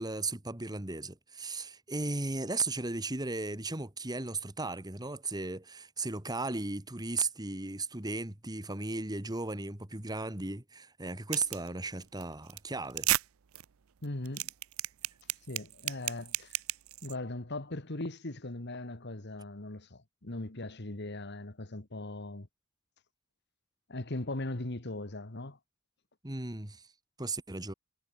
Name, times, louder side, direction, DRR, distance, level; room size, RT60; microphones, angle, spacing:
voice 1, 0.0-13.1 26.2-26.8 27.2-27.7, right 3 dB, 20° right, 1.8 m, -36 dB
sound 1, 11.3-11.7 12.0-12.2 12.5-12.6 12.9-13.2 13.5-13.6 14.0-17.1, right 16 dB, 85° right, 0.6 m, -32 dB
voice 2, 14.0-14.5 15.5-16.6 17.0-22.5 23.9-25.6, left 2 dB, 55° left, 1.9 m, -39 dB
head